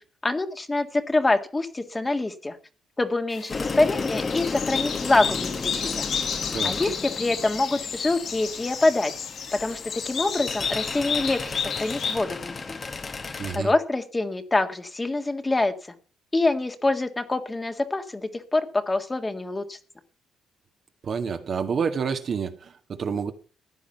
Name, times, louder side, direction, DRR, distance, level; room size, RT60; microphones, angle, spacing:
voice 1, 0.2-2.6 3.0-6.1 6.6-9.1 9.5-12.8 13.5-15.7 16.3-19.8, left 2 dB, 20° left, 1.8 m, -25 dB
sound 1, 3.3-12.2, left 7 dB, 65° left, 3.8 m, -32 dB
sound 2, 3.5-13.6, left 4 dB, 35° left, 1.5 m, -34 dB
voice 2, 13.4-13.7 21.0-23.3, right 6 dB, 50° right, 1.8 m, -28 dB
15.5 x 9.9 x 5.7 m
cardioid pair, 90°, 0 cm